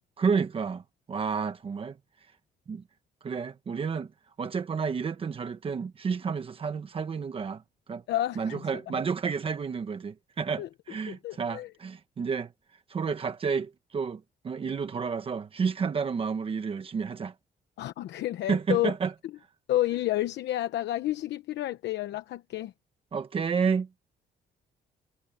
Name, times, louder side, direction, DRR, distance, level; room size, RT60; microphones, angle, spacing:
voice 1, 0.2-0.8 1.1-2.0 2.7-2.8 3.2-4.1 4.4-7.6 7.9-8.0 8.4-12.5 12.9-17.3 18.5-19.1 23.1-23.9, right 5 dB, 30° right, 1.2 m, -30 dB
voice 2, 8.1-8.9 10.6-10.7 11.1-11.7 17.8-18.9 19.7-22.7, left 14 dB, 80° left, 0.9 m, -30 dB
cardioid pair, 165°, 18 cm